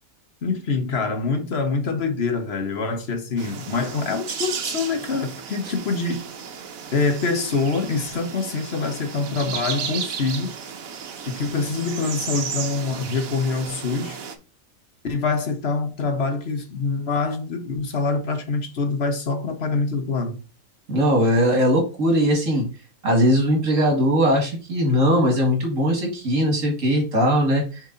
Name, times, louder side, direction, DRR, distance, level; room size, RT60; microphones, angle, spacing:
voice 1, 0.4-6.3 6.9-10.5 11.2-14.2 15.0-20.4, left 4 dB, 50° left, 1.3 m, -25 dB
sound 1, 3.4-14.4, right 7 dB, 85° right, 1.3 m, -34 dB
voice 2, 20.9-22.7 23.0-27.8, equal, 70° right, 2.3 m, -20 dB
6.9 x 3.7 x 3.9 m
omnidirectional pair, 1.4 m